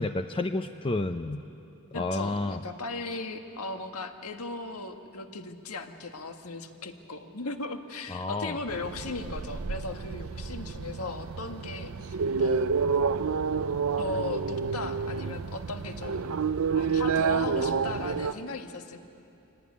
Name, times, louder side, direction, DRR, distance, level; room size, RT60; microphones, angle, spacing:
voice 1, 0.0-1.4 1.9-2.6 8.1-8.6, left 2 dB, 25° left, 8 dB, 0.5 m, -30 dB
voice 2, 1.9-12.7 14.0-16.2 16.8-19.0, left 3 dB, 80° left, 5 dB, 1.7 m, -37 dB
sound 1, 8.7-18.3, right 5 dB, 65° right, 0.5 m, -29 dB
24.5 x 18.0 x 9.6 m, 2.7 s
head